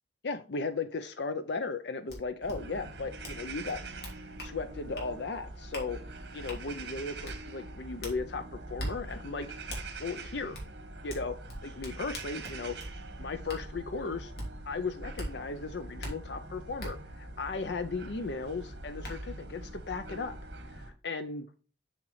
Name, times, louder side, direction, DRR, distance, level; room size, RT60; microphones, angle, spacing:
voice 1, 0.2-3.8 4.4-6.0 6.3-9.5 10.0-10.6 11.0-11.4 11.6-12.8 13.2-14.3 14.7-20.4 20.8-21.5, left 4 dB, 75° left, 9 dB, 0.6 m, -36 dB
sound 1, 2.1-2.2 2.5-2.6 3.2-3.4 3.7-4.5 4.9-5.1 5.7-5.9 6.5-6.6 7.2-7.4 8.0-8.2 8.8-8.9 9.7-9.8 10.5-10.7 11.1-12.9 13.5-13.6 14.4-14.5 15.2-15.3 16.0-16.1 16.8-16.9 18.4-18.5 19.0-19.1, equal, 60° left, 3.0 m, -39 dB
sound 2, 2.4-20.9, right 2 dB, 75° right, 1.6 m, -44 dB
7.0 x 6.5 x 3.2 m, 0.34 s
head